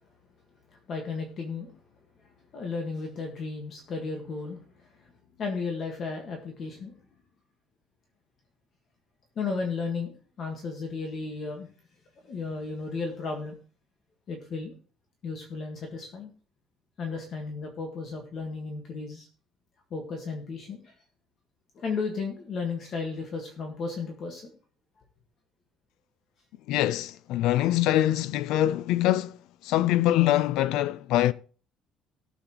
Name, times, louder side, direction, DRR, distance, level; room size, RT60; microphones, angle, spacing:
voice 1, 0.7-1.7 2.5-5.1 5.4-6.9 9.3-11.7 12.2-13.6 14.3-14.7 15.2-16.3 17.0-19.3 19.9-20.9 21.7-24.5, left 4 dB, 40° left, 1.6 m, -34 dB
voice 2, 26.7-29.4 29.6-31.3, left 13 dB, 85° left, 0.5 m, -24 dB
18.0 x 7.2 x 3.0 m
cardioid pair, 170°, 0 cm